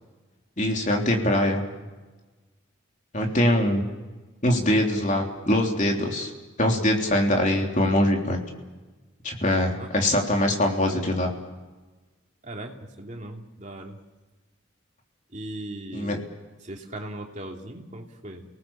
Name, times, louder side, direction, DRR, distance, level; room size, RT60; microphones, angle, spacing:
voice 1, 0.6-1.6 3.1-3.9 4.4-6.3 6.6-8.4 9.2-11.3 15.9-16.2, left 1 dB, 35° left, 1 dB, 3.5 m, -23 dB
voice 2, 9.8-10.1 10.9-11.0 12.4-14.0 15.3-16.2 16.6-18.4, right 1 dB, 35° right, 1 dB, 2.9 m, -38 dB
29.5 x 19.5 x 7.4 m, 1.2 s
head